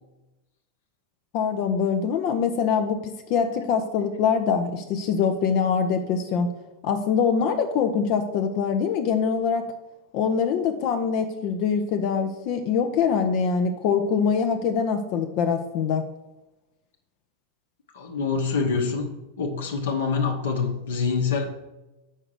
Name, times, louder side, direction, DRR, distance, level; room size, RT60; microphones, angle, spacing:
voice 1, 1.3-3.0 3.3-6.5 6.8-9.6 10.1-16.1, left 6 dB, 45° left, 6 dB, 0.6 m, -24 dB
voice 2, 17.9-19.1 19.4-21.4, left 5 dB, 60° left, 3 dB, 1.1 m, -25 dB
6.5 x 4.8 x 6.4 m, 1.0 s
figure-of-eight pair, 90°, 0 cm